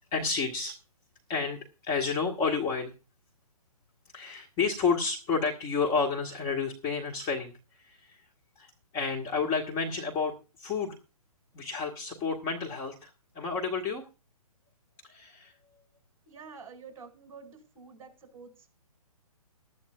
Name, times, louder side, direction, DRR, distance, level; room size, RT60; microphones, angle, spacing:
voice 1, 0.1-0.7 1.3-2.9 4.1-7.5 7.8-8.2 8.6-11.0 11.5-14.0 15.1-15.5, left 5 dB, 20° left, -1 dB, 1.8 m, -30 dB
voice 2, 16.3-18.7, right 5 dB, 15° right, 3 dB, 4.8 m, -48 dB
19.5 x 13.0 x 2.4 m, 0.31 s
figure-of-eight pair, 130°, 19 cm